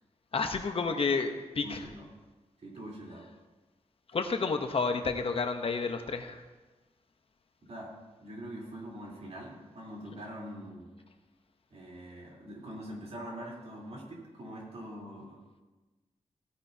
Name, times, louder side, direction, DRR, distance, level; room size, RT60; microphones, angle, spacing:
voice 1, 0.3-1.8 4.1-6.4, left 4 dB, 50° left, 6 dB, 0.8 m, -30 dB
voice 2, 1.6-2.1 2.6-3.3 7.6-10.9 11.7-15.4, right 1 dB, 60° right, -3 dB, 3.5 m, -44 dB
16.5 x 9.8 x 2.8 m, 1.2 s
wide cardioid pair, 110°, 12 cm